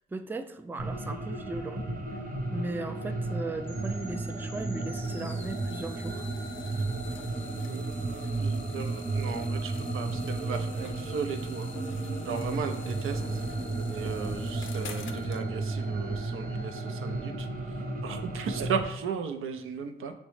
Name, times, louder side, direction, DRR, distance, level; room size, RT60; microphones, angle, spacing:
voice 1, 0.1-1.8 2.5-6.3, right 2 dB, 10° right, 8 dB, 0.3 m, -37 dB
sound 1, 0.8-18.8, right 2 dB, 45° right, 0.8 m, -33 dB
sound 2, 3.6-17.3, left 2 dB, 10° left, 0.8 m, -52 dB
sound 3, 5.0-15.4, left 7 dB, 70° left, 0.4 m, -49 dB
voice 2, 8.4-11.7 12.2-13.4 13.9-17.5 18.0-20.1, right 6 dB, 80° right, 6 dB, 0.4 m, -36 dB
5.9 x 2.1 x 3.2 m, 0.84 s
supercardioid pair, 45°, 21 cm